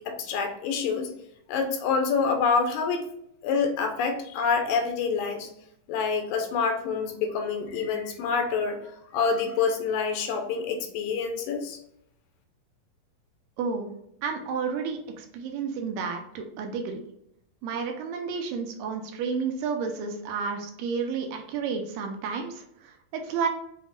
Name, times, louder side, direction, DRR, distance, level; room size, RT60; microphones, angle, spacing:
voice 1, 0.1-1.1 1.5-3.1 3.4-5.5 5.9-8.8 9.1-11.8, left 5 dB, 85° left, 4 dB, 2.3 m, -27 dB
voice 2, 13.6-13.9 14.2-17.0 17.6-23.5, right 5 dB, 80° right, 4 dB, 2.3 m, -31 dB
7.3 x 2.8 x 2.4 m, 0.75 s
omnidirectional pair, 4.1 m